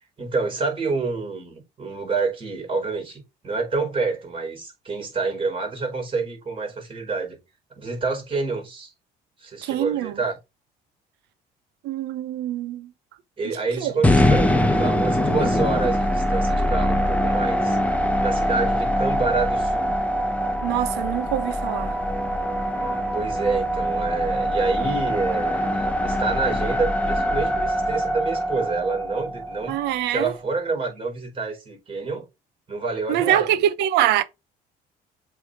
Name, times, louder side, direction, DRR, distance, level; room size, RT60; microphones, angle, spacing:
voice 1, 0.2-7.4 7.7-8.9 9.4-10.4 13.4-17.8 18.2-19.9 22.8-29.8 30.1-32.2 32.7-33.6, right 4 dB, 30° right, 4.5 m, -28 dB
voice 2, 9.6-10.1 11.8-12.9 13.8-13.9 20.6-21.9 29.7-30.3 33.1-34.2, right 12 dB, 90° right, 0.8 m, -24 dB
sound 1, 14.0-30.2, equal, 10° left, 1.0 m, -23 dB
7.7 x 3.5 x 4.9 m
cardioid pair, 110°, 17 cm